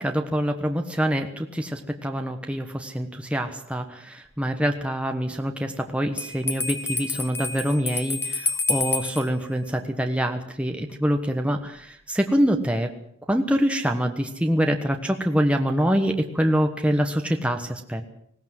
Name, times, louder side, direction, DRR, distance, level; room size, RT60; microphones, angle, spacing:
voice 1, 0.0-12.9 13.3-18.0, equal, 5° right, 4 dB, 1.2 m, -25 dB
Bell, 6.2-9.3, left 4 dB, 10° left, 1.5 m, -28 dB
19.5 x 18.0 x 7.7 m, 0.70 s
head